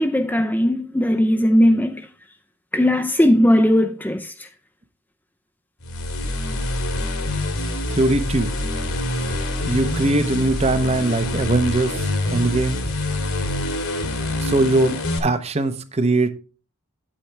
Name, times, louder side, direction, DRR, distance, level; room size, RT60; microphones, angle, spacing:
voice 1, 0.0-2.1 2.7-4.3, equal, 10° left, 0.4 m, -18 dB
sound 1, 5.8-15.2, left 1 dB, 75° left, 1.9 m, -25 dB
voice 2, 8.0-8.5 9.7-11.9 12.3-12.8 14.4-14.9 15.2-16.3, right 2 dB, 30° right, 0.7 m, -20 dB
8.6 x 8.5 x 3.3 m
head